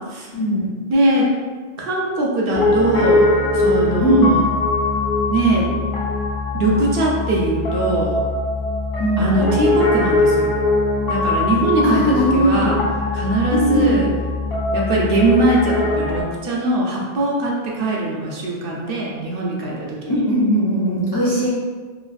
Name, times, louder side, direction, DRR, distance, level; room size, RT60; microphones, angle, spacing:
voice 1, 0.3-0.7 4.0-4.4 9.0-9.4 11.8-12.7 13.5-14.0 20.1-21.5, right 1 dB, 40° left, -8 dB, 0.3 m, -18 dB
voice 2, 0.9-1.3 1.8-4.5 5.3-5.7 6.5-8.2 9.2-10.5 11.1-12.8 13.1-14.1 14.7-20.2, right 2 dB, 65° right, -3 dB, 0.7 m, -21 dB
Piano, 2.5-16.2, left 2 dB, 70° left, 0.8 m, -21 dB
3.1 x 2.4 x 2.4 m, 1.5 s
omnidirectional pair, 1.1 m